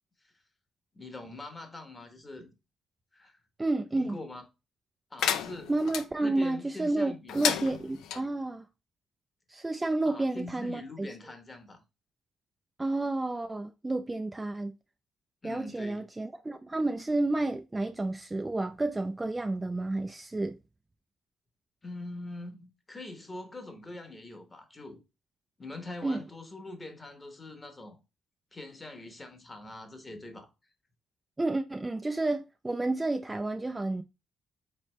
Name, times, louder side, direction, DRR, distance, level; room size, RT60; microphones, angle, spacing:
voice 1, 0.9-2.5 3.1-3.4 3.9-4.4 5.1-5.8 6.2-7.5 10.0-11.8 15.4-16.0 21.8-25.0 25.6-28.0 28.5-30.5, left 2 dB, 25° left, 1.1 m, -43 dB
voice 2, 3.6-4.2 5.7-8.7 9.5-11.1 12.8-14.7 15.4-20.6 26.0-26.2 31.4-34.0, right 2 dB, 15° right, 0.3 m, -30 dB
sound 1, 5.2-6.0 7.3-8.2, left 9 dB, 85° left, 0.4 m, -31 dB
4.0 x 3.3 x 3.1 m
cardioid pair, 90°, 0 cm